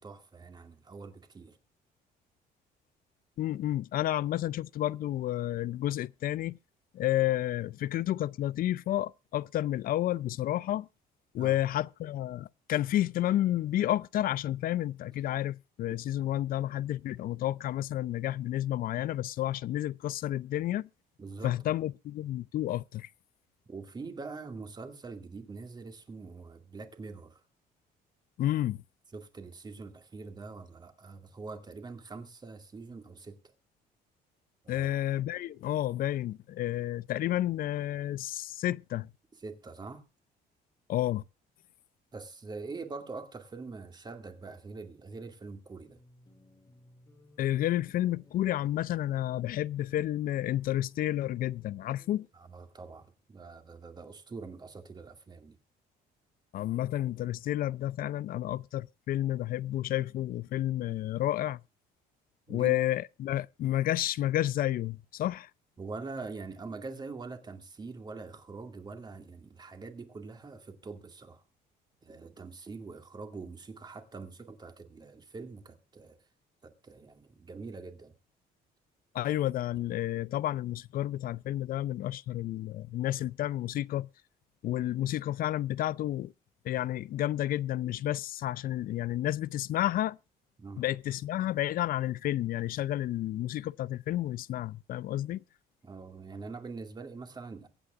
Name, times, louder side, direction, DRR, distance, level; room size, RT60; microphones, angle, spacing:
voice 1, 0.0-1.6 11.4-11.6 21.2-21.8 23.7-27.4 29.1-33.5 34.6-34.9 39.3-40.0 42.1-46.0 52.3-55.6 62.5-62.8 65.8-71.4 72.0-76.2 76.6-78.1 90.6-90.8 95.8-97.7, right 4 dB, 25° right, 2.2 m, -44 dB
voice 2, 3.4-6.6 6.9-10.9 11.3-20.9 21.4-23.1 28.4-28.8 34.7-39.1 40.9-41.2 47.4-52.3 56.5-61.6 62.5-65.5 79.1-84.1 84.6-86.3 86.6-90.2 90.8-95.4, left 13 dB, 60° left, 0.5 m, -31 dB
sound 1, 45.9-52.3, left 4 dB, 20° left, 1.9 m, -59 dB
23.5 x 8.6 x 2.5 m
cardioid pair, 110°, 17 cm